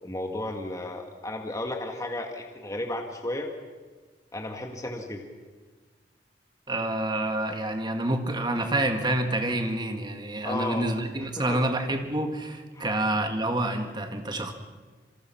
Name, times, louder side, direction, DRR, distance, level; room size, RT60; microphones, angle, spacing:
voice 1, 0.0-3.5 4.3-5.2 10.4-10.9 11.4-11.6 12.8-12.9, left 1 dB, 20° left, 3 dB, 1.7 m, -33 dB
voice 2, 6.7-14.5, right 1 dB, 25° right, 6 dB, 1.9 m, -28 dB
27.5 x 23.0 x 5.9 m, 1.4 s
head